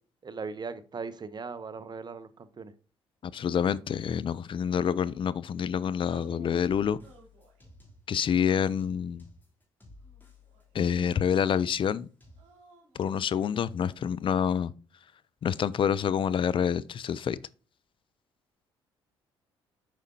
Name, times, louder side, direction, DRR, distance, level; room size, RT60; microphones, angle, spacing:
voice 1, 0.2-2.7, right 4 dB, 35° right, 0.8 m, -39 dB
voice 2, 3.2-7.0 8.1-9.3 10.7-12.1 12.9-14.7 15.4-17.4, left 8 dB, 40° left, 0.4 m, -27 dB
sound 1, 6.1-6.6 7.0-7.7 8.3-9.2 10.0-11.0 12.3-13.7, right 4 dB, 65° right, 2.3 m, -56 dB
sound 2, 6.2-8.2 8.6-12.6, left 2 dB, 15° left, 3.1 m, -55 dB
7.4 x 5.0 x 2.8 m
hypercardioid pair, 50°, 13 cm